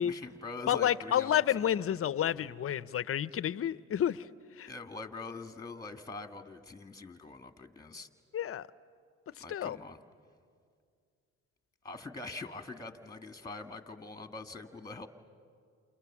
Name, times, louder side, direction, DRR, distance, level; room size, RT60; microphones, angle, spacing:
voice 1, 0.0-1.7 2.2-2.5 4.7-8.1 9.4-10.0 11.8-15.1, left 3 dB, 10° left, 8 dB, 1.6 m, -44 dB
voice 2, 0.7-4.3 4.6-4.7 8.3-8.7 9.5-9.8, left 10 dB, 50° left, 17 dB, 0.6 m, -30 dB
28.5 x 28.5 x 7.2 m, 2.2 s
cardioid pair, 90°, 30 cm